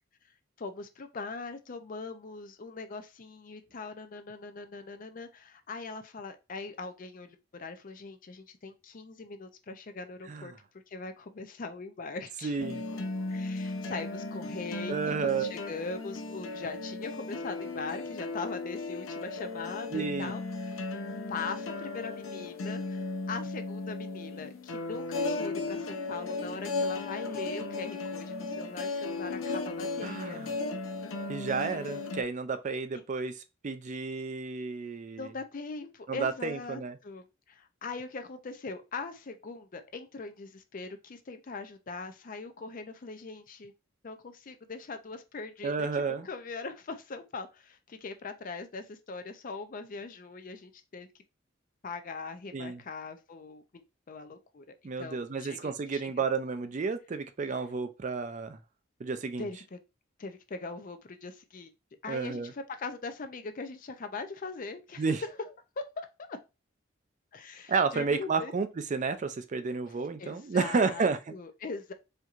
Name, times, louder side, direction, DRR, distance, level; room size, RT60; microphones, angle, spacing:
voice 1, 0.6-10.5 10.9-12.6 13.3-21.0 21.3-30.4 35.2-43.7 44.0-51.1 51.8-54.7 55.0-56.1 59.4-59.8 60.2-61.7 62.0-66.4 67.3-68.5 70.2-71.9, left 4 dB, 40° left, 0.5 m, -41 dB
voice 2, 12.4-12.8 14.9-15.5 19.9-20.3 30.0-30.5 31.3-33.4 33.6-35.3 36.1-37.0 45.6-46.3 52.5-52.8 54.8-58.6 59.0-59.5 62.1-62.5 65.0-65.2 67.7-71.2, right 4 dB, 35° right, 0.4 m, -31 dB
sound 1, 12.6-32.2, left 3 dB, 90° left, 0.6 m, -36 dB
4.4 x 2.7 x 2.4 m
head